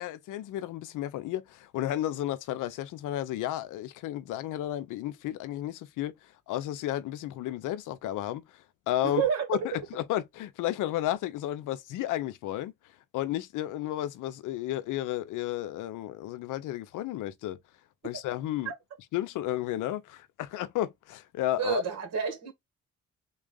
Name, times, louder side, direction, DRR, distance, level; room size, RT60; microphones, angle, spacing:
voice 1, 0.0-6.1 6.5-8.4 8.9-9.2 9.5-12.7 13.1-17.6 18.0-18.7 19.1-21.8, left 13 dB, 85° left, 0.6 m, -32 dB
voice 2, 9.0-9.4 18.6-18.7 21.6-22.5, right 7 dB, 55° right, 1.6 m, -29 dB
3.6 x 2.4 x 3.8 m
cardioid pair, 90°, 30 cm